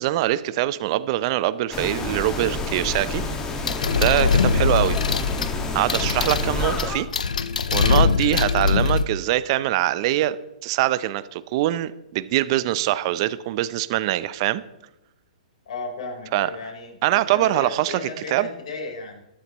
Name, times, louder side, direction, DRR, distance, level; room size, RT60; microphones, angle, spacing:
voice 1, 0.0-3.2 3.9-5.0 5.7-7.1 7.7-14.6 16.3-16.5 17.0-18.5, right 15 dB, 45° right, 16 dB, 0.6 m, -23 dB
sound 1, 1.7-7.0, left 3 dB, 15° left, 1.8 m, -28 dB
sound 2, 3.7-9.0, left 5 dB, 85° left, 0.8 m, -22 dB
voice 2, 4.1-4.7 15.7-19.2, left 3 dB, 65° left, 0 dB, 4.2 m, -35 dB
21.5 x 7.8 x 3.1 m, 0.89 s
hypercardioid pair, 130°, 4 cm